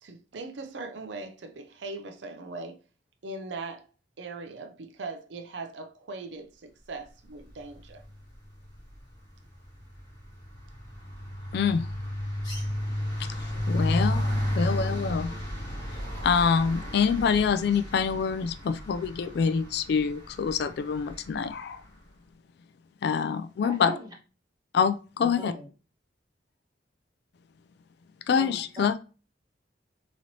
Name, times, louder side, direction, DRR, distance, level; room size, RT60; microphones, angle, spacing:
voice 1, 0.0-2.8 3.2-3.9 4.2-8.0, right 3 dB, 75° right, 0.5 m, -40 dB
sound 1, 7.8-8.1 8.4-21.6, left 1 dB, 25° left, 2.1 m, -33 dB
voice 2, 11.5-11.8 13.7-14.2 14.6-15.3 16.2-21.8 23.0-23.9 24.7-25.5 28.3-28.9, left 6 dB, 65° left, 0.3 m, -25 dB
voice 3, 23.6-24.1 25.2-25.7 28.3-29.0, equal, 20° right, 1.5 m, -39 dB
4.0 x 3.1 x 2.8 m
head